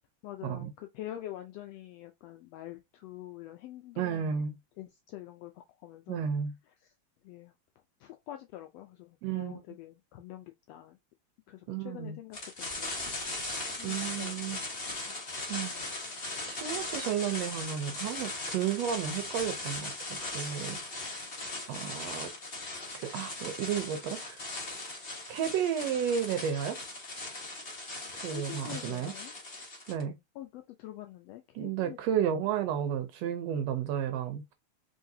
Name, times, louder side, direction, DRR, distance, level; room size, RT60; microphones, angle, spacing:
voice 1, 0.2-4.4 4.8-6.3 6.8-6.9 7.2-7.5 8.0-11.0 11.5-13.2 13.7-15.2 28.1-29.3 30.3-32.4, left 14 dB, 80° left, 1.4 m, -46 dB
voice 2, 4.0-4.6 6.1-6.5 9.2-9.6 11.7-12.2 13.8-14.6 15.0-15.2 15.5-15.7 16.5-20.8 21.7-22.3 22.9-24.5 25.3-26.8 28.1-29.1 29.9-30.2 31.5-34.5, right 8 dB, 75° right, 1.6 m, -32 dB
sound 1, 12.3-30.0, left 2 dB, 40° left, 0.8 m, -39 dB
3.9 x 3.7 x 2.6 m
omnidirectional pair, 3.3 m